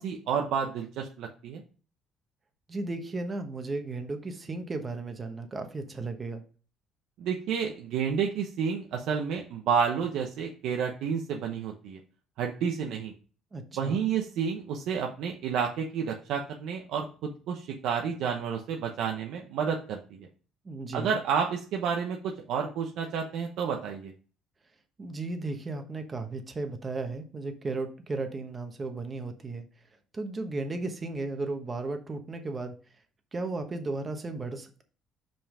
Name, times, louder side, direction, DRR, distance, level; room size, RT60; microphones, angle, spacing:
voice 1, 0.0-1.6 7.2-12.0 12.4-13.1 13.7-20.3 20.9-24.1, right 7 dB, 70° right, 2 dB, 0.9 m, -30 dB
voice 2, 2.7-6.4 13.5-14.1 20.6-21.2 25.0-29.6 30.1-32.7 33.3-34.8, right 3 dB, 25° right, 6 dB, 1.1 m, -35 dB
5.6 x 5.3 x 4.9 m, 0.38 s
cardioid pair, 140°, 0 cm